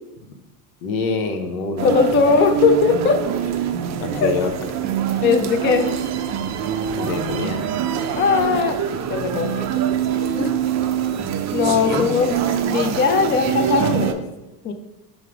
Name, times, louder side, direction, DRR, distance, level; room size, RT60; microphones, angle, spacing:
voice 1, 0.8-2.2 4.0-4.5 7.0-7.7 11.6-12.3, left 4 dB, 75° left, 5 dB, 0.8 m, -26 dB
voice 2, 1.8-3.2 4.1-4.3 5.2-5.9 8.2-8.8 9.1-9.8 10.4-10.5 11.5-12.3 12.6-14.2 14.6-14.7, left 5 dB, 25° left, 7 dB, 0.4 m, -19 dB
sound 1, 1.8-14.1, right 9 dB, 40° right, 0.4 m, -24 dB
4.7 x 2.0 x 4.6 m, 0.98 s
hypercardioid pair, 75°, 47 cm